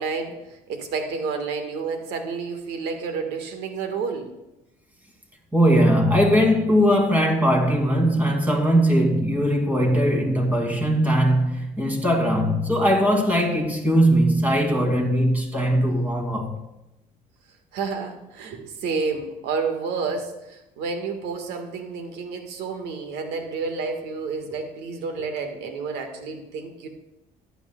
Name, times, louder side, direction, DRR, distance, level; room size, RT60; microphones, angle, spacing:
voice 1, 0.0-4.3 17.7-26.9, right 4 dB, 90° right, 1.6 m, -30 dB
voice 2, 5.5-16.5, equal, 10° right, 2.6 m, -20 dB
14.5 x 10.0 x 2.3 m
cardioid pair, 110°, 17 cm